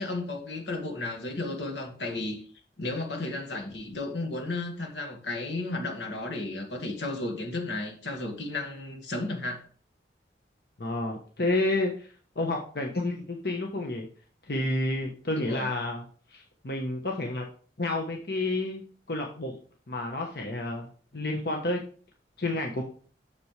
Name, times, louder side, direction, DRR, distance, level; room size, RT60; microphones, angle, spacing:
voice 1, 0.0-2.4 2.8-9.6 15.3-15.7, left 2 dB, 85° left, 2.0 m, -33 dB
voice 2, 10.8-12.1 12.3-14.1 14.4-16.0 16.3-17.4 17.8-18.8 19.1-19.5 19.9-20.9 21.1-21.8 22.4-22.8, left 2 dB, 60° left, 1.1 m, -30 dB
7.7 x 6.9 x 3.3 m
head